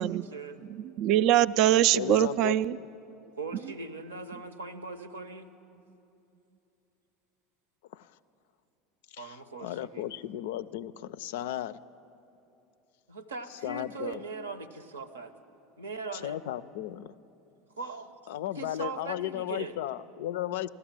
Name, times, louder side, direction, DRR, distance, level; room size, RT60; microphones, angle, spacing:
voice 1, 0.0-0.6 3.4-5.5 9.2-10.1 13.1-15.3 15.8-16.7 17.7-18.1 18.5-19.8, right 4 dB, 80° right, 10 dB, 0.8 m, -40 dB
voice 2, 0.7-2.8, right 12 dB, 50° right, 16 dB, 0.3 m, -23 dB
voice 3, 1.9-2.9 7.9-8.1 9.1-9.4 9.6-11.8 13.6-14.2 16.1-17.1 18.3-20.7, left 12 dB, 65° left, 16 dB, 0.4 m, -35 dB
16.0 x 12.5 x 7.4 m, 2.8 s
figure-of-eight pair, 75°, 0 cm